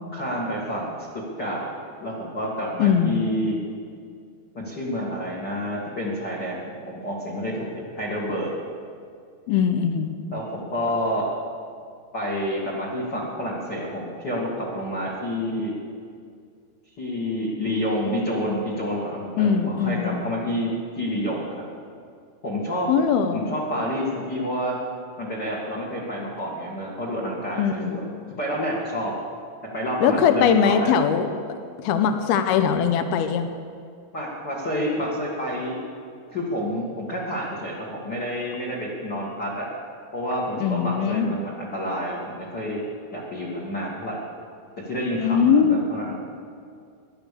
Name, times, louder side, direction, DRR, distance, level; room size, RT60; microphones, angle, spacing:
voice 1, 0.1-1.7 2.0-3.6 4.5-6.6 6.9-8.5 10.3-11.3 12.1-15.7 17.0-21.6 22.4-22.9 23.3-24.8 25.2-28.0 28.4-29.2 29.7-30.9 34.1-35.8 36.3-39.7 40.1-42.8 43.1-44.2 44.8-46.2, equal, 45° left, -4 dB, 1.4 m, -29 dB
voice 2, 2.8-3.2 9.5-10.2 19.4-20.2 22.9-23.6 27.5-28.0 30.0-33.5 40.6-41.3 45.1-45.8, left 7 dB, 80° left, 8 dB, 2.3 m, -21 dB
16.0 x 11.5 x 6.8 m, 2.3 s
omnidirectional pair, 5.5 m